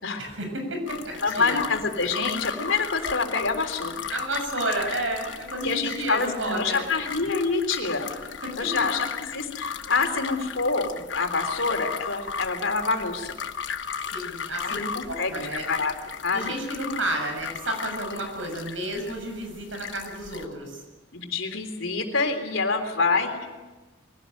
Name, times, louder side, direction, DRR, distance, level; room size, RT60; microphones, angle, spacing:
voice 1, 0.2-1.6 4.1-6.9 7.9-8.7 14.1-15.7 16.3-20.8, right 1 dB, 80° right, 3 dB, 7.3 m, -32 dB
sound 1, 0.9-20.4, left 6 dB, 70° left, 1.2 m, -36 dB
voice 2, 1.2-3.9 5.6-8.1 8.6-13.3 14.6-15.4 15.7-15.9 16.2-16.6 21.1-23.5, left 4 dB, 90° left, 5 dB, 3.6 m, -26 dB
23.0 x 17.5 x 9.2 m, 1.2 s
head